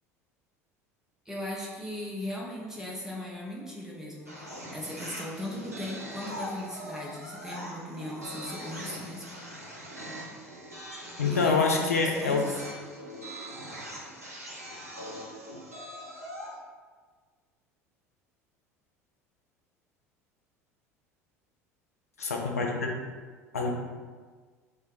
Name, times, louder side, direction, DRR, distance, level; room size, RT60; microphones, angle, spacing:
voice 1, 1.3-9.3 11.2-11.9 12.2-12.5, left 1 dB, 5° right, -4 dB, 0.7 m, -38 dB
sound 1, 4.3-16.6, equal, 85° right, 0.5 m, -42 dB
voice 2, 11.2-12.4 22.2-22.9 23.5-23.7, left 4 dB, 80° left, 1 dB, 0.5 m, -26 dB
3.2 x 2.1 x 3.7 m, 1.5 s
figure-of-eight pair, 70°, 8 cm